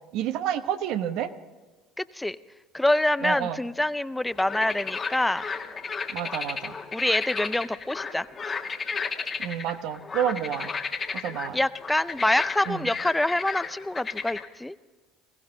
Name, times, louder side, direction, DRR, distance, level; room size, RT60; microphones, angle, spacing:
voice 1, 0.1-1.3 3.2-3.6 6.1-6.7 9.4-10.7 11.2-11.6 12.7-12.9, right 10 dB, 65° right, 10 dB, 0.9 m, -29 dB
voice 2, 2.0-2.4 2.7-5.4 6.9-8.6 11.5-14.8, left 1 dB, 10° left, 15 dB, 0.5 m, -26 dB
sound 1, 4.3-14.5, left 5 dB, 35° left, 1.4 m, -34 dB
21.0 x 16.5 x 3.8 m, 1.3 s
hypercardioid pair, 70°, 0 cm